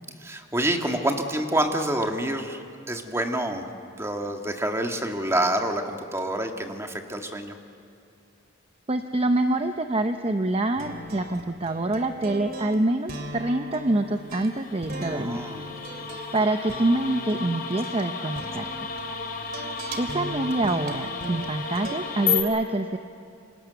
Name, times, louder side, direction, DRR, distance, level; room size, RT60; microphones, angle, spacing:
voice 1, 0.2-3.7 4.0-7.6 15.1-15.7 16.0-16.2, right 1 dB, 15° right, 4 dB, 1.9 m, -27 dB
voice 2, 8.9-15.4 15.8-18.7 20.0-23.0, right 2 dB, 30° right, 7 dB, 0.8 m, -26 dB
sound 1, 10.8-22.0, right 1 dB, 50° right, 2.8 m, -39 dB
sound 2, 14.3-22.4, left 5 dB, 50° left, 3.4 m, -33 dB
27.5 x 26.0 x 7.0 m, 2.6 s
head